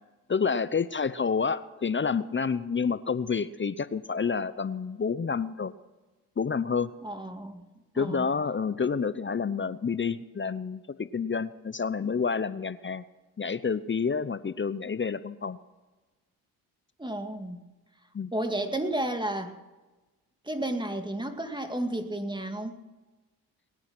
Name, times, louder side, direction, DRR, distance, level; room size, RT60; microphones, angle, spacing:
voice 1, 0.3-5.7 6.4-6.9 7.9-13.0 13.4-15.6 18.1-18.3, left 5 dB, 30° left, 15 dB, 0.7 m, -29 dB
voice 2, 7.0-7.7 8.0-8.3 17.0-17.6 18.3-19.5 20.5-22.8, right 1 dB, 10° right, 6 dB, 2.2 m, -32 dB
20.5 x 9.9 x 6.1 m, 1.2 s
supercardioid pair, 50°, 42 cm